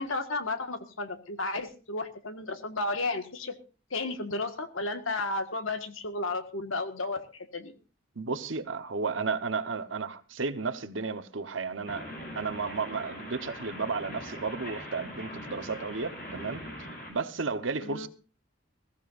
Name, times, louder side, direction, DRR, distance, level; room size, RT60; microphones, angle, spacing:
voice 1, 0.0-3.6 3.9-7.7 17.8-18.1, left 2 dB, 85° left, 1.7 m, -33 dB
voice 2, 8.2-12.1 12.3-16.6 17.1-18.1, right 4 dB, 75° right, 1.1 m, -33 dB
sound 1, 11.9-17.1, equal, 45° left, 5.1 m, -41 dB
21.0 x 15.0 x 2.6 m
head